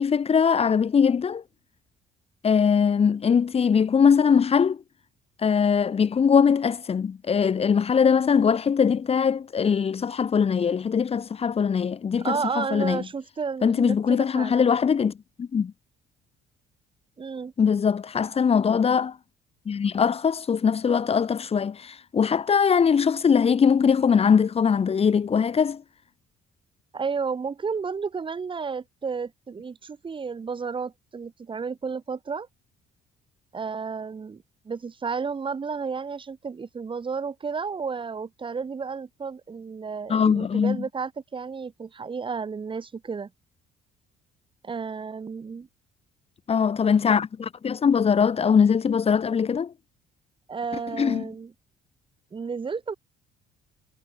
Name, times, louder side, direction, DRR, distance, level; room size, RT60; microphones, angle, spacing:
voice 1, 0.0-1.4 2.4-4.8 5.4-13.0 13.6-15.1 15.4-15.7 17.6-19.2 19.7-25.8 40.1-40.8 46.5-49.7 50.9-51.2, left 6 dB, 35° left, 3.0 m, -21 dB
voice 2, 12.2-14.7 17.2-17.5 26.9-32.5 33.5-43.3 44.6-45.7 50.5-51.5 52.3-52.9, right 5 dB, 30° right, 4.5 m, -32 dB
cardioid pair, 110°, 17 cm